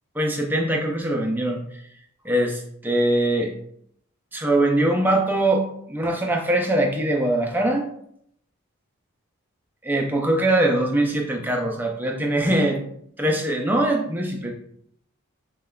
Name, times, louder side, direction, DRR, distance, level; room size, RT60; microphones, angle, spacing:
voice 1, 0.2-1.6 2.2-3.5 4.3-7.9 9.8-12.8 13.2-14.5, right 1 dB, 10° right, 1 dB, 0.3 m, -22 dB
5.1 x 2.2 x 2.2 m, 0.70 s
head